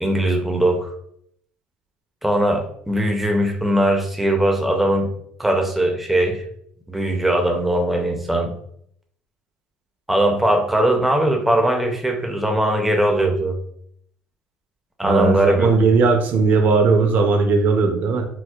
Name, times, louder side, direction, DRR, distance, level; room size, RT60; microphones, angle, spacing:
voice 1, 0.0-0.9 2.2-5.1 5.4-6.4 6.9-8.5 10.1-13.6 15.0-15.7, right 1 dB, 5° right, 3 dB, 0.5 m, -20 dB
voice 2, 15.0-18.3, right 4 dB, 50° right, 5 dB, 0.5 m, -17 dB
4.3 x 2.0 x 2.3 m, 0.67 s
cardioid pair, 140°, 4 cm